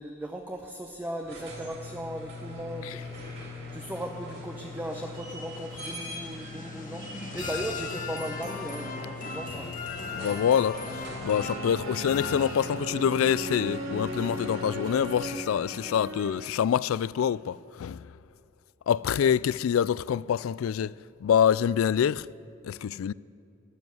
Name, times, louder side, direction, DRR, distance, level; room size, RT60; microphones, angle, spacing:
voice 1, 0.0-3.0 3.7-9.7, right 1 dB, 10° right, 0.7 m, -37 dB
sound 1, 1.2-15.5 17.2-17.3, left 2 dB, 55° right, 3.8 m, -42 dB
sound 2, 4.2-13.1, left 4 dB, 40° left, 1.2 m, -39 dB
voice 2, 10.2-18.1 18.9-22.3 22.6-23.1, left 8 dB, 75° left, 0.3 m, -26 dB
sound 3, 11.2-16.6, right 1 dB, 75° right, 2.2 m, -37 dB
12.5 x 12.5 x 9.3 m
head